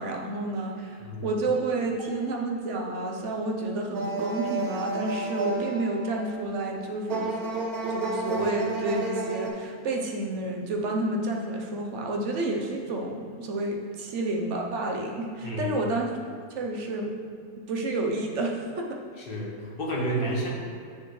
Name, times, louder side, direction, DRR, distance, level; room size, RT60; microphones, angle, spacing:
voice 1, 0.0-7.3 7.9-16.1 16.5-17.1 17.7-19.0, right 2 dB, 55° right, 0 dB, 1.1 m, -30 dB
sound 1, 3.9-9.5, right 2 dB, 85° right, 1.4 m, -31 dB
voice 2, 15.4-15.8 19.2-20.5, right 1 dB, 40° left, -3 dB, 1.4 m, -30 dB
7.5 x 6.7 x 3.2 m, 2.4 s
omnidirectional pair, 1.6 m